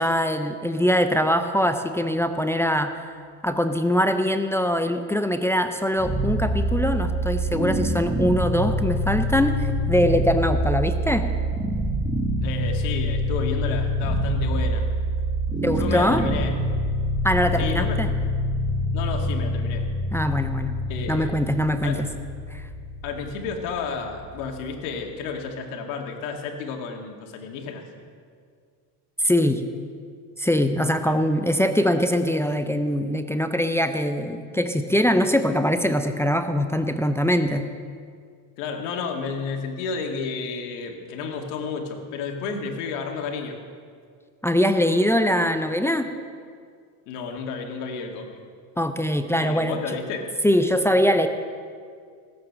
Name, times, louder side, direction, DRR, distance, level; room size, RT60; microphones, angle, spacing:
voice 1, 0.0-3.1 3.4-11.3 15.6-16.2 17.2-18.1 20.1-20.8 21.1-22.1 22.5-22.7 29.2-29.6 30.4-37.7 44.4-46.1 48.8-49.8 50.4-51.3, equal, 5° left, 8 dB, 0.5 m, -22 dB
sound 1, 6.0-25.0, equal, 10° right, 1.4 m, -26 dB
voice 2, 12.4-14.9 15.8-16.5 17.6-18.0 18.9-19.8 20.9-21.4 21.8-22.0 23.0-27.9 31.1-31.2 38.6-43.6 47.1-48.4 49.4-50.3, left 5 dB, 75° left, 3 dB, 2.2 m, -31 dB
17.0 x 7.9 x 7.3 m, 2.2 s
supercardioid pair, 115°, 47 cm